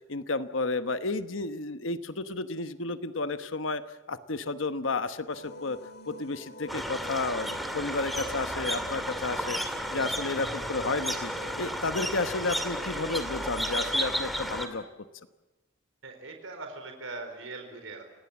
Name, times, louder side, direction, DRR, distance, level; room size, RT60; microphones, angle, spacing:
voice 1, 0.0-3.8 4.1-5.8 6.1-11.3 11.6-14.8, left 3 dB, 80° left, 11 dB, 1.2 m, -32 dB
sound 1, 5.3-14.8, left 1 dB, 50° left, 2.1 m, -46 dB
sound 2, 6.7-14.7, equal, ahead, 2.2 m, -33 dB
voice 2, 16.0-18.0, right 3 dB, 85° right, 5 dB, 4.2 m, -41 dB
29.5 x 18.5 x 7.2 m, 1.1 s
head